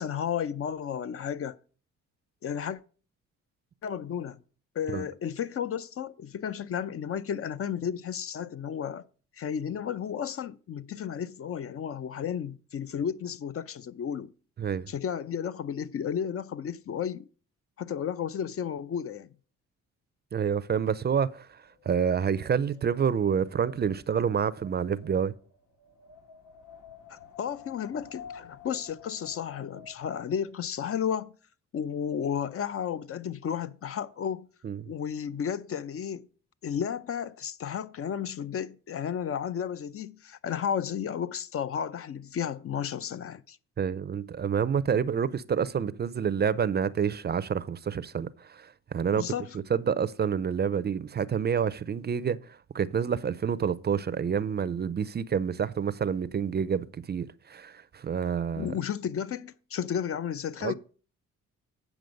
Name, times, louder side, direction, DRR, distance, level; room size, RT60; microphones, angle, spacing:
voice 1, 0.0-1.6 2.4-2.8 3.8-4.4 4.8-9.0 9.4-14.3 14.9-17.3 17.8-19.3 27.1-31.3 31.7-34.5 34.9-36.3 36.6-43.6 49.2-49.6 58.6-60.7, left 8 dB, 50° left, 0.6 m, -33 dB
voice 2, 20.3-21.6 21.9-25.3 34.6-34.8 43.8-49.3 49.7-58.7 60.6-60.7, right 7 dB, 35° right, 0.5 m, -28 dB
Wind, 21.4-30.6, left 5 dB, 80° left, 2.2 m, -51 dB
9.2 x 6.1 x 5.1 m
cardioid pair, 90°, 30 cm